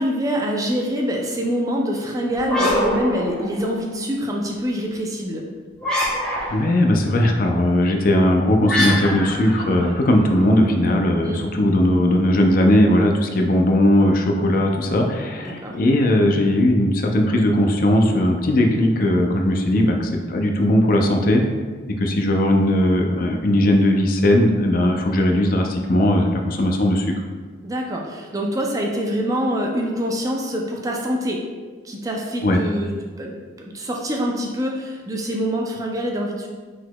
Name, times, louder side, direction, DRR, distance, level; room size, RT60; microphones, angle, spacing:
voice 1, 0.0-5.4 11.2-11.4 15.4-15.7 27.6-31.4 31.8-33.4 33.6-36.5, equal, 20° right, 0 dB, 0.4 m, -25 dB
sound 1, 2.3-3.9 5.8-6.8 8.7-10.5, left 1 dB, 5° left, 0.9 m, -24 dB
voice 2, 6.5-21.4 21.9-27.1 32.4-32.6, left 1 dB, 50° left, 2 dB, 0.4 m, -18 dB
4.7 x 4.0 x 2.2 m, 1.5 s
head